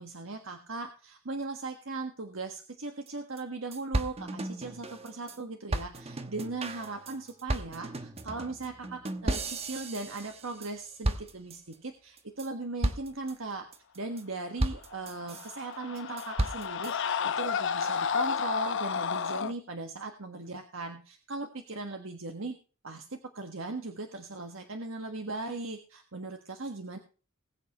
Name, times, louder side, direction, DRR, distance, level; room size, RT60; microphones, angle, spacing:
voice 1, 0.0-13.7 13.9-22.6 22.8-27.0, right 3 dB, 70° right, 5 dB, 1.5 m, -38 dB
sound 1, 3.1-3.2 3.4-3.5 3.7-5.4 5.7-10.7 11.0-11.7 12.2-12.5 12.8-13.3 13.7-14.2 14.6-15.5 16.0-16.9, right 1 dB, 30° right, 1.1 m, -34 dB
Screaming, 15.1-19.5, left 6 dB, 60° left, 0.8 m, -31 dB
20.0 x 8.4 x 3.0 m, 0.37 s
head